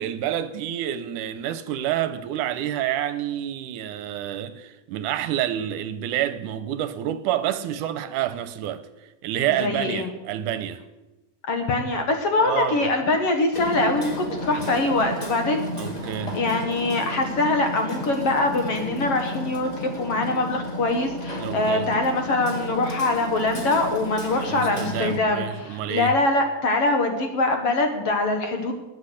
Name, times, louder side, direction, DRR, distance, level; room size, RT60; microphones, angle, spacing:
voice 1, 0.0-8.9 9.2-10.8 12.4-12.9 15.8-16.4 21.4-21.9 24.5-26.1, right 11 dB, 80° right, 2.2 m, -28 dB
voice 2, 9.6-10.1 11.5-15.6 16.3-28.7, left 2 dB, 55° left, 2.2 m, -23 dB
Hammer, 13.5-25.2, left 1 dB, 15° left, 1.7 m, -33 dB
20.0 x 8.1 x 6.5 m
omnidirectional pair, 3.7 m